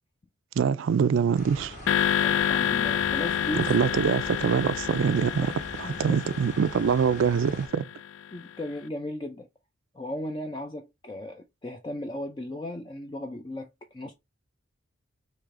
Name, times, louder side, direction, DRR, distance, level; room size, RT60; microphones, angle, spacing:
voice 1, 0.6-1.7 3.5-5.5 6.0-7.9, right 6 dB, 80° right, 0.4 m, -24 dB
sound 1, 1.3-7.7, equal, 40° left, 2.3 m, -42 dB
sound 2, 1.9-8.2, left 9 dB, 85° left, 0.4 m, -29 dB
voice 2, 2.2-3.8 5.4-6.2 8.3-9.5 9.9-14.1, left 1 dB, 25° left, 0.5 m, -36 dB
4.8 x 2.9 x 3.6 m
head